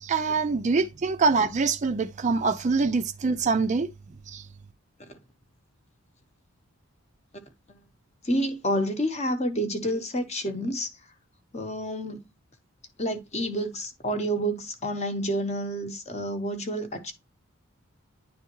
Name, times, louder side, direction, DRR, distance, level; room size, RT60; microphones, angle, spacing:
voice 1, 0.0-3.9 4.3-4.4, right 4 dB, 30° right, 0.4 m, -24 dB
voice 2, 8.2-10.9 11.5-12.2 13.0-17.1, equal, 30° left, 0.8 m, -29 dB
9.9 x 3.4 x 2.9 m
head